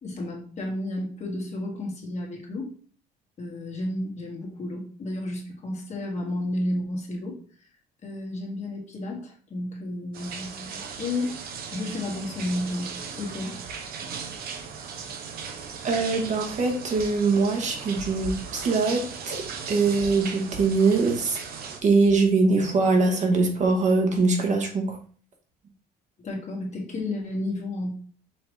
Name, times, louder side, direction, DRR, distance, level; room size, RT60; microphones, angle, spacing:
voice 1, 0.0-2.7 3.4-7.4 8.0-11.4 11.7-13.6 26.2-28.0, left 1 dB, 40° left, 0 dB, 1.7 m, -32 dB
sound 1, 10.1-21.8, right 5 dB, 65° right, 0.8 m, -37 dB
voice 2, 15.8-21.4 21.8-25.0, right 3 dB, 45° right, 3 dB, 1.1 m, -22 dB
5.6 x 3.0 x 3.1 m, 0.44 s
cardioid pair, 110°, 17 cm